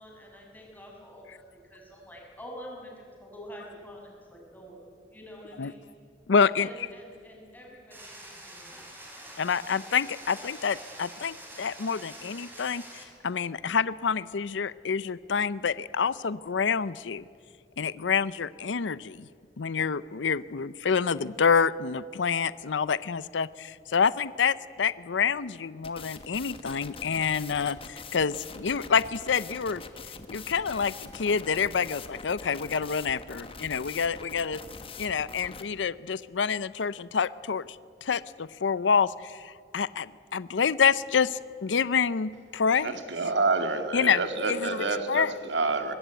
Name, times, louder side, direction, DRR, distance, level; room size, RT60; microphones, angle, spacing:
voice 1, 0.0-1.4 1.7-4.8 5.1-5.8 6.6-8.8, equal, 10° left, 6.6 m, -46 dB
voice 2, 6.3-6.7 9.4-12.8 13.2-17.2 17.8-19.2 19.6-29.8 30.3-34.6 35.0-37.6 38.0-39.1 39.7-42.9 43.9-44.2 44.5-45.3, left 6 dB, 85° left, 0.6 m, -27 dB
sound 1, 7.9-13.0, right 1 dB, 10° right, 5.0 m, -46 dB
sound 2, 25.8-35.6, left 4 dB, 30° left, 1.5 m, -43 dB
voice 3, 42.8-45.9, right 3 dB, 80° right, 2.1 m, -28 dB
23.5 x 21.0 x 9.2 m
head